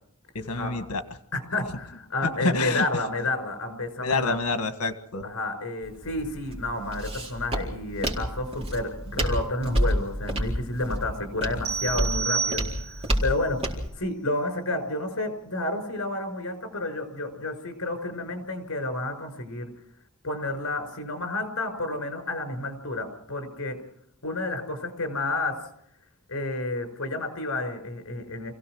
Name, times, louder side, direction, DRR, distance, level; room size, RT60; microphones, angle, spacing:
voice 1, 0.3-1.0 2.4-2.8 4.0-5.2, left 3 dB, 85° left, 8 dB, 1.7 m, -27 dB
voice 2, 1.3-4.4 5.2-12.6 12.9-19.7 20.2-23.8 24.2-25.6 26.3-28.5, left 2 dB, 70° left, 6 dB, 5.6 m, -30 dB
Walk footsteps, 5.8-13.9, equal, 30° right, 4.2 m, -30 dB
sound 1, 11.6-13.2, right 6 dB, 80° right, 2.9 m, -30 dB
27.5 x 17.0 x 6.3 m, 0.72 s
head